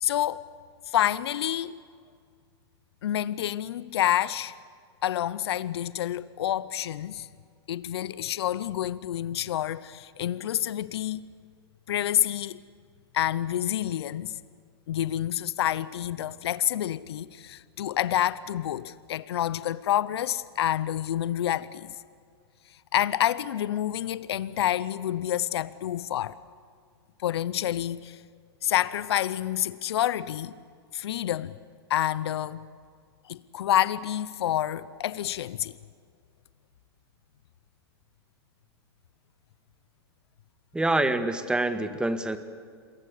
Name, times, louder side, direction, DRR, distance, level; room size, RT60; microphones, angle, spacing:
voice 1, 0.0-0.4 0.9-1.7 3.0-4.5 5.0-7.3 7.7-11.2 11.9-12.6 13.1-14.4 14.9-21.9 22.9-26.4 27.2-28.2 28.6-30.5 30.9-31.6 31.9-32.7 33.3-35.7, left 12 dB, 75° left, 0.8 m, -28 dB
voice 2, 40.7-42.4, right 2 dB, 5° right, 1.7 m, -26 dB
27.5 x 23.0 x 8.4 m
hypercardioid pair, 120°, 14 cm